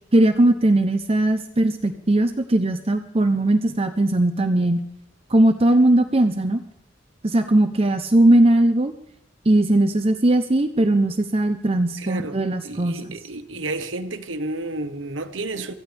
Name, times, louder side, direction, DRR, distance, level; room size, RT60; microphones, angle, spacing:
voice 1, 0.1-4.8 5.3-6.6 7.2-8.9 9.5-13.0, right 1 dB, 30° right, 0.8 m, -19 dB
voice 2, 12.0-12.4 12.6-15.7, right 2 dB, 90° right, 1.3 m, -31 dB
24.0 x 15.0 x 3.5 m
head